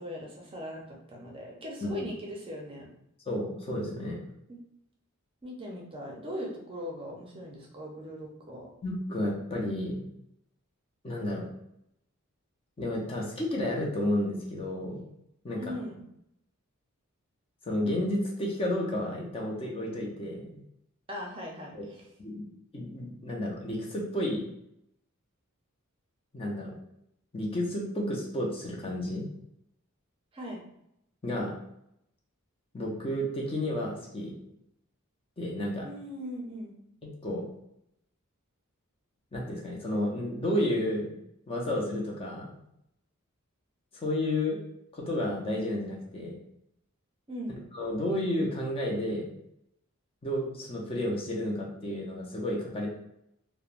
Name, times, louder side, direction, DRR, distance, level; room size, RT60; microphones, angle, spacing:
voice 1, 0.0-2.9 4.5-4.6 5.4-8.7 15.6-16.1 21.1-22.0 30.3-30.6 35.8-36.8 47.3-47.6, equal, 25° right, -1 dB, 0.5 m, -39 dB
voice 2, 3.3-4.2 8.8-10.0 11.0-11.5 12.8-15.1 15.4-15.8 17.6-20.6 21.7-21.8 22.2-22.4 22.7-24.5 26.3-26.8 27.3-29.3 31.2-31.5 32.7-34.4 35.4-35.9 37.0-37.5 39.3-41.2 41.5-42.6 43.9-44.6 44.9-46.4 47.7-49.3 50.2-52.9, left 1 dB, 25° left, -2 dB, 0.5 m, -31 dB
3.1 x 2.0 x 2.4 m, 0.78 s
head